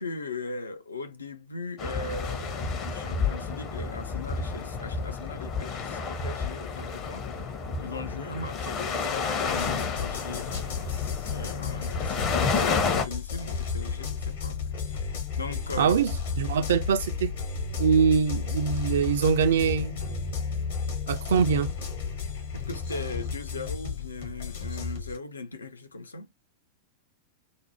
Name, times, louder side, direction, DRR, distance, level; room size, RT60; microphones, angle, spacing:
voice 1, 0.0-7.3 7.8-14.6 14.9-15.1 15.4-16.0 22.5-26.3, left 3 dB, 75° left, 0.5 m, -38 dB
sound 1, 1.8-13.0, left 5 dB, 35° left, 0.6 m, -31 dB
sound 2, 9.5-25.2, left 5 dB, 60° left, 1.0 m, -33 dB
voice 2, 15.8-17.3 17.8-20.0 21.1-21.7, right 6 dB, 60° right, 0.3 m, -23 dB
2.5 x 2.0 x 2.8 m
figure-of-eight pair, 90°, 0 cm